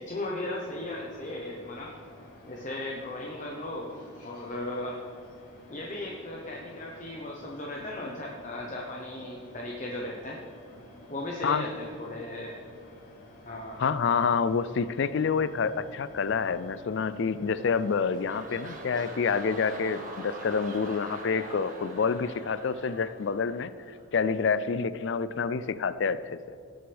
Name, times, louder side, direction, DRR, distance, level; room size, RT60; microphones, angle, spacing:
voice 1, 0.0-1.9 2.4-3.9 4.2-5.0 5.7-10.4 11.1-12.6 13.5-13.8, left 1 dB, 35° left, -2 dB, 0.9 m, -36 dB
sound 1, 0.5-18.8, left 1 dB, 85° left, 3.1 m, -51 dB
voice 2, 13.8-26.6, left 5 dB, 55° left, 15 dB, 0.4 m, -28 dB
sound 2, 17.5-24.1 24.6-24.7, right 2 dB, 40° right, 1.6 m, -43 dB
18.0 x 7.8 x 3.4 m, 2.4 s
head